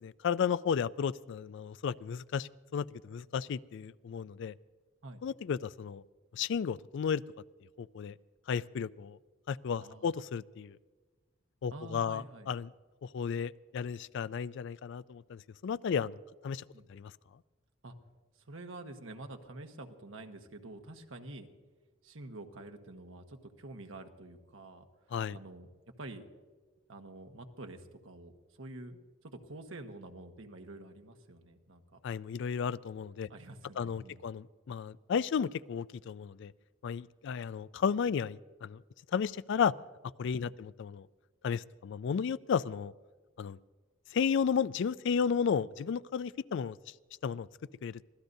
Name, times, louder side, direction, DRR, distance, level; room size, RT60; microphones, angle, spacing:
voice 1, 0.0-4.5 5.2-6.0 6.3-7.2 7.8-8.2 8.5-9.2 9.5-10.8 11.6-12.7 13.0-16.6 16.9-17.1 25.1-25.4 32.0-33.3 33.8-36.5 36.8-38.8 39.1-39.7 40.2-41.1 41.4-42.9 43.4-43.6 44.1-46.8 47.2-47.5 47.8-48.0, left 6 dB, 65° left, 19 dB, 0.3 m, -33 dB
voice 2, 11.7-12.5 16.7-16.9 17.8-17.9 18.5-21.5 22.0-24.8 25.3-25.7 26.0-26.2 26.9-28.3 28.6-32.0 33.3-34.2 40.4-40.6, right 2 dB, 90° right, 5 dB, 1.3 m, -47 dB
24.5 x 16.5 x 2.7 m, 1.3 s
head